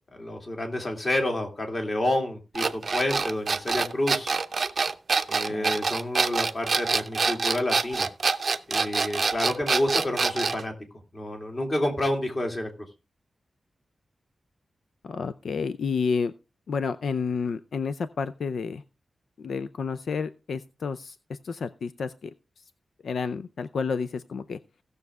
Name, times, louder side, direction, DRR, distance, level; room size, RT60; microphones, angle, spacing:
voice 1, 0.1-4.3 5.3-8.1 8.7-10.7 11.1-12.9, left 1 dB, 35° left, 2 dB, 2.5 m, -29 dB
sound 1, 2.5-10.6, right 4 dB, 45° right, 0.6 m, -25 dB
voice 2, 15.0-16.3 16.7-18.8 19.4-22.3 22.6-22.7 23.0-24.6, left 5 dB, 80° left, 12 dB, 0.5 m, -30 dB
17.0 x 6.7 x 3.5 m, 0.28 s
wide cardioid pair, 165°, 0 cm